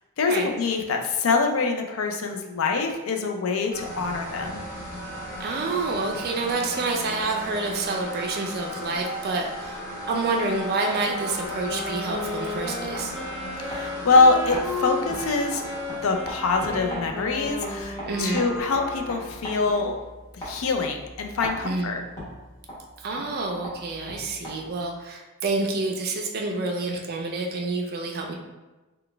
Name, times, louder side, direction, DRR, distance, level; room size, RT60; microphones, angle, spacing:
voice 1, 0.2-4.6 13.7-15.6 16.0-19.9 20.4-22.0, left 3 dB, 65° left, 4 dB, 0.4 m, -24 dB
sound 1, 3.7-18.5, equal, 40° left, 0.7 m, -36 dB
voice 2, 5.4-13.1 18.0-18.5 21.6-21.9 23.0-28.3, right 3 dB, 45° right, 2 dB, 0.4 m, -28 dB
sound 2, 11.2-24.9, equal, 20° left, 1.3 m, -40 dB
Wind instrument woodwind instrument, 11.2-19.5, left 2 dB, 10° right, 0.8 m, -34 dB
3.9 x 2.2 x 3.3 m, 1.1 s
head